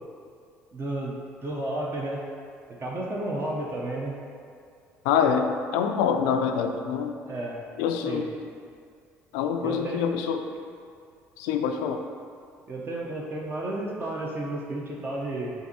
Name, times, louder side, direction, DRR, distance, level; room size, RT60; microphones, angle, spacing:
voice 1, 0.7-1.2 1.4-2.2 2.7-4.2 7.3-7.6 8.1-8.3 9.6-10.0 12.7-15.5, right 1 dB, 40° right, -3 dB, 0.7 m, -32 dB
voice 2, 5.0-7.1 7.8-8.3 9.3-10.4 11.4-12.0, left 7 dB, 80° left, 5 dB, 0.3 m, -25 dB
6.4 x 2.6 x 2.8 m, 2.3 s
hypercardioid pair, 70°, 6 cm